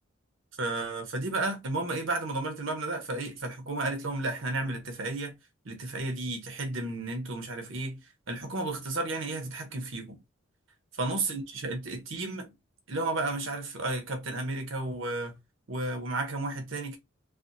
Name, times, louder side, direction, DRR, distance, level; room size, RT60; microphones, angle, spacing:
voice 1, 0.6-5.4 5.6-8.0 8.3-10.2 11.0-12.5 12.9-15.4 15.7-17.0, right 2 dB, 75° right, 0.9 m, -32 dB
3.3 x 2.2 x 2.6 m
head